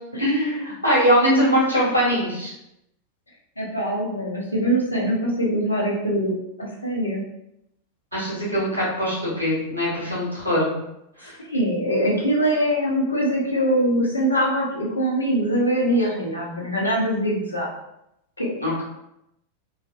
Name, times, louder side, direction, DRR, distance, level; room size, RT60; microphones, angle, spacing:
voice 1, 0.2-2.5 8.1-10.7 11.2-11.3 18.6-18.8, equal, 85° right, -7 dB, 1.4 m, -22 dB
voice 2, 3.6-7.2 11.2-17.7 18.4-18.8, equal, 80° left, -3 dB, 0.8 m, -23 dB
3.2 x 2.6 x 2.5 m, 0.83 s
figure-of-eight pair, 90°, 0 cm